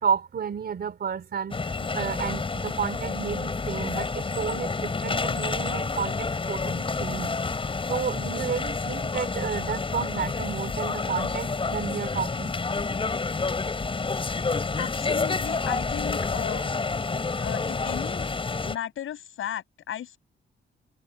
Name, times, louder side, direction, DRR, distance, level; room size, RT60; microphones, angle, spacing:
voice 1, 0.0-7.4 7.9-12.5, right 7 dB, 50° right, 3.5 m, -31 dB
sound 1, 1.5-18.8, left 4 dB, 25° left, 6.7 m, -29 dB
voice 2, 14.8-16.8 17.4-18.3 18.6-20.2, left 10 dB, 90° left, 7.6 m, -35 dB
wide cardioid pair, 155°, 20 cm